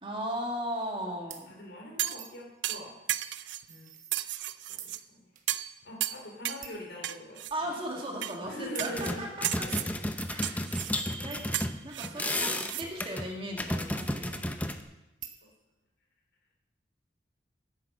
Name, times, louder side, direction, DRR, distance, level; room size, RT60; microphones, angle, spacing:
voice 1, 0.0-1.6 7.5-9.5 10.3-10.7 11.2-11.4 11.8-14.6, equal, 30° right, -1 dB, 2.3 m, -37 dB
voice 2, 1.0-3.9 4.7-5.3 5.8-7.8 8.5-9.2 9.6-10.1, left 1 dB, 80° left, -1 dB, 2.8 m, -44 dB
sound 1, 1.3-1.5 2.2-2.4 3.2-4.5 4.8-5.0 5.4-5.5 5.9-6.0 6.6-6.9 7.5-7.6 8.7-9.0 10.2-10.3 11.3-11.6 12.1-13.5 15.2-15.5, right 9 dB, 45° right, 1.1 m, -48 dB
sound 2, 2.0-2.3 2.6-3.6 4.1-5.0 5.5-5.7 6.0-6.7 7.0-7.5 8.2-8.4 8.8-9.1 9.4-9.9 10.4-11.0 11.5-12.9 13.2-13.3, right 13 dB, 85° right, 0.5 m, -34 dB
sound 3, 8.5-8.6 8.8-14.8, left 1 dB, 10° left, 0.7 m, -33 dB
10.0 x 9.5 x 6.9 m, 0.97 s
head